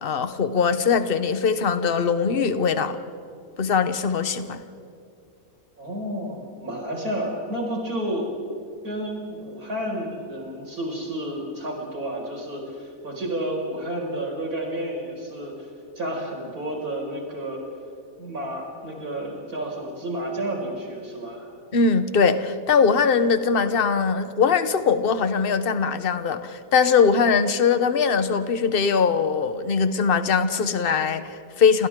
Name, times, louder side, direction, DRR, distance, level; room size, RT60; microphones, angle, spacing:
voice 1, 0.0-3.0 3.6-4.6 21.7-31.9, left 5 dB, 40° left, 10 dB, 1.2 m, -21 dB
voice 2, 5.8-8.3 8.8-15.7 15.9-17.6 18.2-21.5, right 1 dB, 75° right, -2 dB, 6.5 m, -31 dB
29.0 x 28.0 x 3.8 m, 2.5 s
omnidirectional pair, 1.6 m